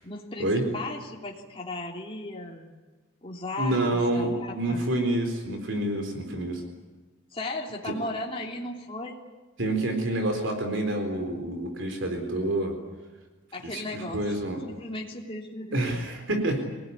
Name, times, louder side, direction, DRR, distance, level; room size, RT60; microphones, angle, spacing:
voice 1, 0.0-2.7 3.2-4.8 7.3-9.2 13.5-14.4 14.7-16.1, left 2 dB, 25° left, -2 dB, 3.2 m, -36 dB
voice 2, 3.6-6.6 9.6-12.8 13.6-14.6 15.7-16.6, right 1 dB, 65° right, 5 dB, 4.1 m, -28 dB
26.5 x 19.0 x 9.9 m, 1.2 s
head